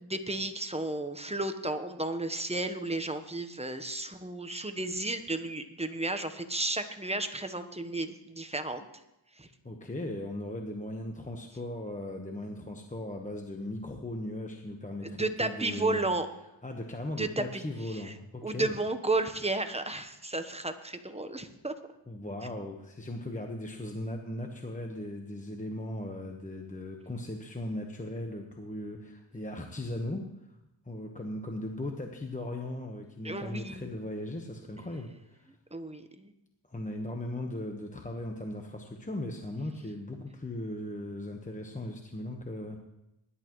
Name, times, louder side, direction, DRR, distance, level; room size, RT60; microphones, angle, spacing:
voice 1, 0.0-8.8 9.4-9.5 15.0-16.3 17.2-18.1 18.4-21.7 33.2-34.0 35.7-36.3, right 2 dB, 15° right, 8 dB, 1.0 m, -33 dB
voice 2, 9.6-16.0 16.6-18.8 22.1-30.6 30.8-35.5 36.7-42.8, left 1 dB, 15° left, 3 dB, 1.2 m, -38 dB
20.0 x 11.5 x 3.1 m, 0.90 s
cardioid pair, 75°, 50 cm